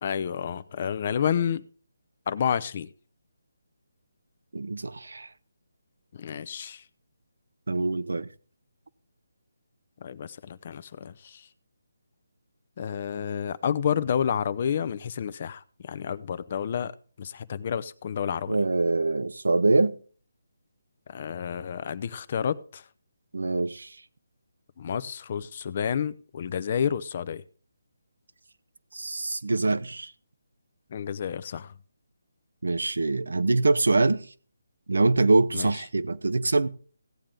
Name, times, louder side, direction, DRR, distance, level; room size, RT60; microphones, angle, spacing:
voice 1, 0.0-1.6 2.3-2.9 6.1-6.8 10.0-11.4 12.8-16.9 17.2-18.6 21.1-22.8 24.8-27.4 30.9-31.7 35.5-35.7, left 8 dB, 40° left, 0.7 m, -30 dB
voice 2, 4.5-5.3 7.7-8.3 18.5-20.0 23.3-24.0 28.9-30.1 32.6-34.2 34.9-36.7, right 3 dB, 80° right, 0.9 m, -24 dB
16.5 x 8.7 x 3.8 m
figure-of-eight pair, 155°, 0 cm